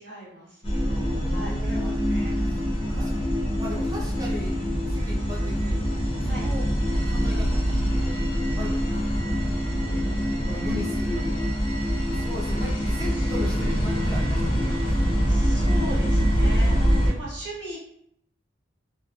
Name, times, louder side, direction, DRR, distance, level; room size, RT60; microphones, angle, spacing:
voice 1, 0.0-3.2 6.2-6.5 9.8-10.7 11.3-11.5 13.1-13.7 15.3-17.8, right 1 dB, 60° right, -7 dB, 1.2 m, -40 dB
sound 1, 0.6-17.1, equal, 25° left, 0.6 m, -24 dB
voice 2, 0.8-2.0 2.5-2.6 2.9-3.2 3.5-4.5 4.9-6.7 7.1-8.0 8.6-9.4 10.4-11.4 12.1-15.4 16.4-16.9, left 1 dB, 15° right, -3 dB, 0.5 m, -38 dB
3.1 x 2.3 x 2.2 m, 0.71 s
head